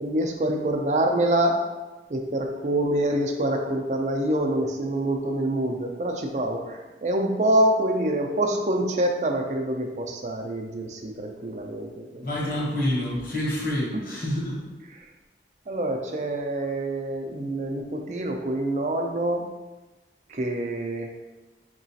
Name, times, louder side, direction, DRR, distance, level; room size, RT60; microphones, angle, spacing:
voice 1, 0.0-1.6 2.1-12.6 14.9-15.1 15.7-19.4 20.3-21.1, right 1 dB, 40° right, 2 dB, 0.4 m, -26 dB
voice 2, 12.2-14.6, left 1 dB, 50° left, -5 dB, 1.1 m, -27 dB
4.7 x 3.0 x 2.7 m, 1.2 s
head